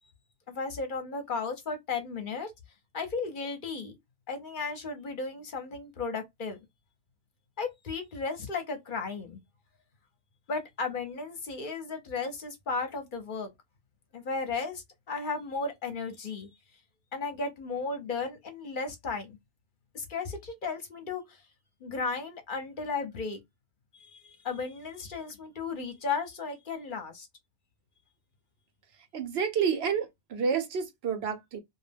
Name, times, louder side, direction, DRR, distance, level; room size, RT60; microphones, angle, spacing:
voice 1, 0.5-2.5 2.9-3.9 4.3-6.6 7.6-9.4 10.5-13.5 14.1-16.5 17.1-19.4 19.9-21.4 21.8-23.4 23.9-27.3, left 4 dB, 55° left, 0.8 m, -35 dB
voice 2, 29.1-31.6, right 6 dB, 75° right, 0.9 m, -29 dB
2.3 x 2.1 x 3.2 m
omnidirectional pair, 1.1 m